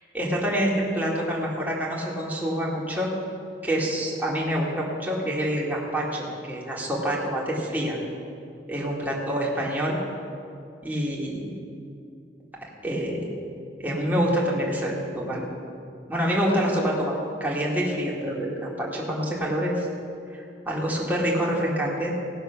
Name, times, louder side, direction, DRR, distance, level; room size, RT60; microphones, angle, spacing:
voice 1, 0.1-3.1 3.6-8.0 8.7-10.0 10.8-11.5 12.8-13.2 13.8-15.5 16.1-17.1 17.4-19.9 20.3-22.1, equal, 10° right, -5 dB, 2.2 m, -26 dB
17.5 x 7.1 x 5.8 m, 2.5 s
head